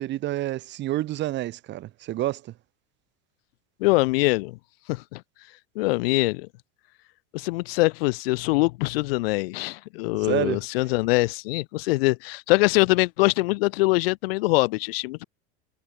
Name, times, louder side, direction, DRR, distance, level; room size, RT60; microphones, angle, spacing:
voice 1, 0.0-2.5 10.2-10.6, right 15 dB, 40° right, 1.9 m, -28 dB
voice 2, 3.8-4.6 4.9-5.2 5.8-6.5 7.3-15.2, left 23 dB, 75° left, 0.6 m, -23 dB
supercardioid pair, 140°, 29 cm